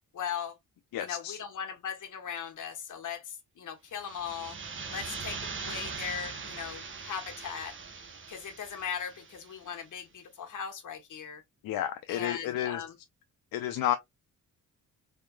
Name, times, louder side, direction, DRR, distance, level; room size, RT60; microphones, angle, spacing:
voice 1, 0.1-0.6 1.0-4.6 4.9-7.8 8.3-11.4 12.1-12.9, left 8 dB, 60° left, 1.3 m, -38 dB
voice 2, 0.9-1.4 11.6-12.8 13.5-14.0, left 11 dB, 80° left, 0.5 m, -31 dB
sound 1, 3.9-9.6, right 5 dB, 35° right, 0.9 m, -41 dB
3.5 x 3.5 x 2.2 m
cardioid pair, 95°, 34 cm